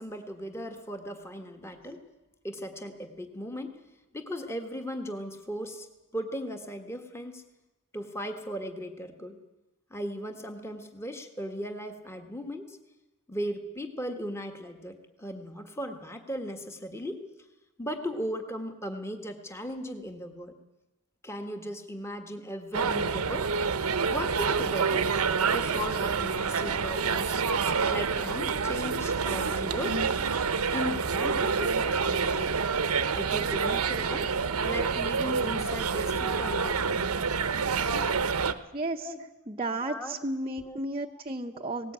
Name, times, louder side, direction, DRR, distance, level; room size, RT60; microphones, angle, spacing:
voice 1, 0.0-2.0 2.4-3.8 4.1-5.9 6.1-7.4 7.9-9.4 9.9-12.8 13.3-17.2 17.8-20.5 21.2-23.5 24.0-25.1 25.5-27.4 27.9-30.0 30.4-32.6 33.1-34.3 34.6-37.1 39.0-39.2 39.8-40.2 40.4-40.8 41.1-41.2 41.5-41.7, equal, 10° left, 5 dB, 1.5 m, -37 dB
sound 1, 22.7-38.5, right 5 dB, 80° right, 1.0 m, -27 dB
voice 2, 38.7-39.1 39.5-41.9, right 2 dB, 25° right, 1 dB, 0.8 m, -33 dB
19.0 x 18.5 x 8.7 m, 1.0 s
head